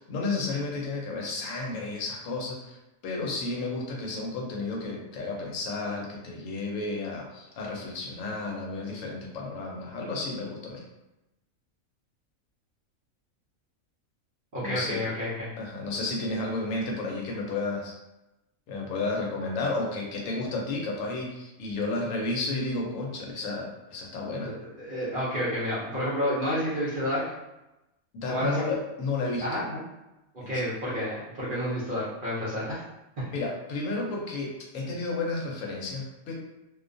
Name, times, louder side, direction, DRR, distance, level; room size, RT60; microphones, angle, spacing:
voice 1, 0.0-2.8 3.0-10.8 14.6-15.0 15.6-17.9 18.7-24.5 28.1-29.4 30.4-30.5 33.3-36.3, left 3 dB, 75° left, -1 dB, 0.9 m, -32 dB
voice 2, 14.5-15.5 24.4-27.2 28.3-28.6 29.4-29.8 30.5-32.7, equal, 50° right, -8 dB, 0.6 m, -30 dB
2.5 x 2.2 x 2.5 m, 0.96 s
omnidirectional pair, 1.4 m